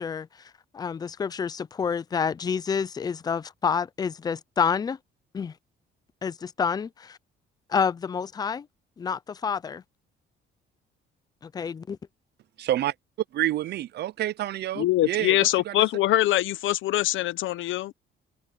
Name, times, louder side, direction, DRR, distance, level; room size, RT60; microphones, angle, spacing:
voice 1, 0.0-5.0 5.3-5.6 6.2-7.2 7.7-8.7 9.0-9.8 11.4-12.0, left 6 dB, 20° left, 0.4 m, -28 dB
voice 2, 12.6-12.9 13.3-15.7, right 13 dB, 55° right, 0.5 m, -28 dB
voice 3, 14.8-17.9, left 15 dB, 70° left, 0.7 m, -23 dB
cardioid pair, 170°, 21 cm